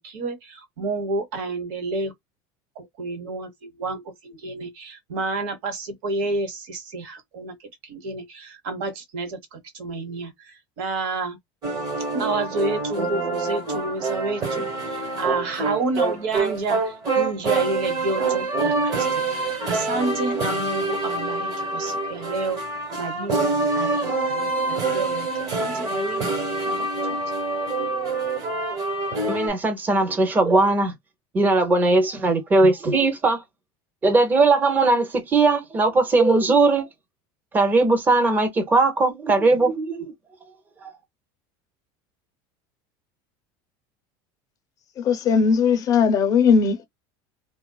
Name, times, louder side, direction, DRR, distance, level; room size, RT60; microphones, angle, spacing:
voice 1, 0.0-2.1 2.7-11.4 12.1-22.6 23.0-25.3 25.6-26.3 26.7-27.2, right 3 dB, 70° right, 1.2 m, -30 dB
sound 1, 11.6-29.5, right 3 dB, 35° right, 1.2 m, -26 dB
voice 2, 29.3-30.9 31.3-33.4 34.0-36.9 37.5-40.1 40.8-40.9, right 3 dB, 15° right, 0.7 m, -19 dB
voice 3, 45.0-46.9, left 6 dB, 30° left, 0.6 m, -18 dB
2.8 x 2.3 x 2.2 m
cardioid pair, 165°, 11 cm